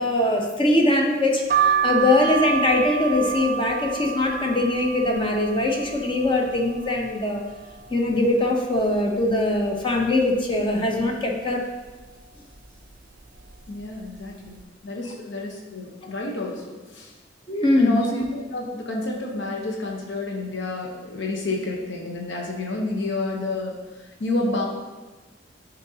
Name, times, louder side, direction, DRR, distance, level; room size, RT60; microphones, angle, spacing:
voice 1, 0.0-7.4 7.9-11.6 17.5-18.0, left 2 dB, 25° left, 1 dB, 0.7 m, -22 dB
sound 1, 1.5-7.2 7.6-8.4 8.8-8.9 9.1-10.2 10.7-11.0 11.8-12.1 12.9-13.2 13.4-13.6, right 7 dB, 45° right, 0.6 m, -28 dB
voice 2, 13.7-17.1 17.8-24.6, left 2 dB, 70° left, 0 dB, 0.9 m, -29 dB
11.0 x 4.0 x 2.8 m, 1.2 s
head